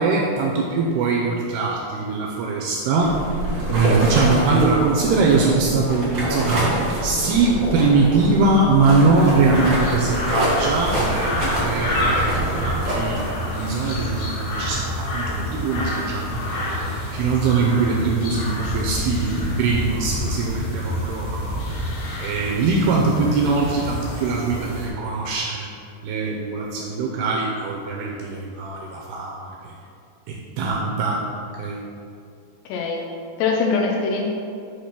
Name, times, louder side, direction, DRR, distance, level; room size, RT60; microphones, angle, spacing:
voice 1, 0.0-3.2 3.7-6.7 7.0-16.9 17.1-21.6 22.2-25.7 26.0-29.7 30.3-31.2 31.6-31.8, right 3 dB, 85° right, -2 dB, 2.3 m, -22 dB
sound 1, 3.0-13.3, right 1 dB, 60° right, 1.1 m, -26 dB
sound 2, 9.1-24.9, left 1 dB, 60° left, 2.0 m, -28 dB
voice 2, 32.7-33.0 33.4-34.3, left 4 dB, 80° left, 0 dB, 2.5 m, -22 dB
8.3 x 2.8 x 5.9 m, 2.5 s
omnidirectional pair, 5.0 m